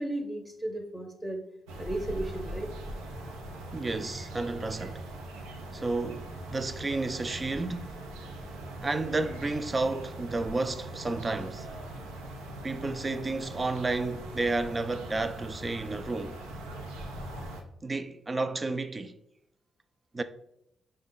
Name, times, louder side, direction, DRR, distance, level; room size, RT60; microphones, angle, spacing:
voice 1, 0.0-1.4 1.8-2.7, right 1 dB, 5° right, 0.7 m, -34 dB
sound 1, 1.7-17.6, right 1 dB, 90° right, 0.5 m, -41 dB
voice 2, 3.7-5.0 5.7-8.0 8.8-11.7 12.6-16.4 17.8-19.2 20.1-20.2, right 3 dB, 35° right, 0.4 m, -31 dB
5.1 x 2.2 x 3.7 m
hypercardioid pair, 50°, 0 cm